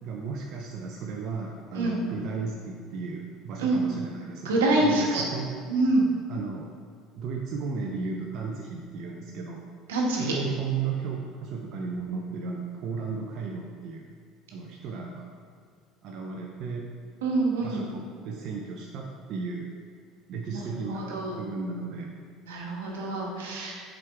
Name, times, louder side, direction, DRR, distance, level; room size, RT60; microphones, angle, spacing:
voice 1, 0.0-4.5 4.8-5.5 6.3-6.7 7.2-9.7 10.1-14.1 14.5-15.3 16.0-16.9 17.6-19.7 20.3-22.1, right 5 dB, 55° right, 0 dB, 0.7 m, -34 dB
voice 2, 4.4-5.2 5.7-6.0 9.9-10.3 17.2-17.8 20.5-21.4 22.5-23.8, right 2 dB, 85° right, -2 dB, 1.3 m, -26 dB
7.8 x 5.1 x 3.5 m, 2.2 s
hypercardioid pair, 75°, 0 cm